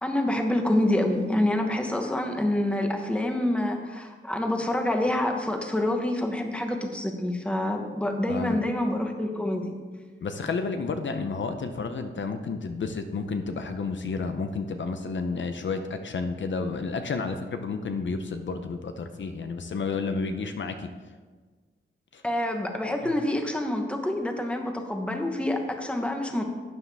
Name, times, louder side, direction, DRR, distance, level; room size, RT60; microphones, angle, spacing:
voice 1, 0.0-9.7 22.2-26.4, left 1 dB, 5° left, 3 dB, 1.0 m, -27 dB
voice 2, 8.3-8.6 10.2-20.9 22.1-22.2, left 4 dB, 65° left, 7 dB, 0.7 m, -31 dB
12.0 x 9.6 x 3.4 m, 1.4 s
wide cardioid pair, 155°, 21 cm